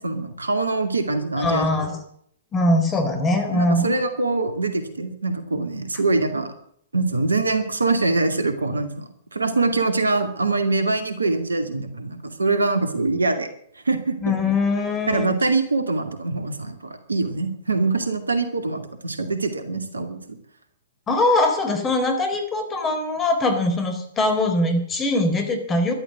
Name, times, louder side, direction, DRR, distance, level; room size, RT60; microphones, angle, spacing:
voice 1, 0.0-1.7 3.5-6.5 6.9-13.5 13.9-14.3 15.1-20.2, right 3 dB, 80° right, 8 dB, 2.3 m, -24 dB
voice 2, 1.4-2.0 2.5-4.0 14.2-15.3 21.1-25.9, left 2 dB, 20° left, 5 dB, 3.8 m, -22 dB
13.5 x 12.0 x 7.9 m, 0.67 s
figure-of-eight pair, 115°, 0 cm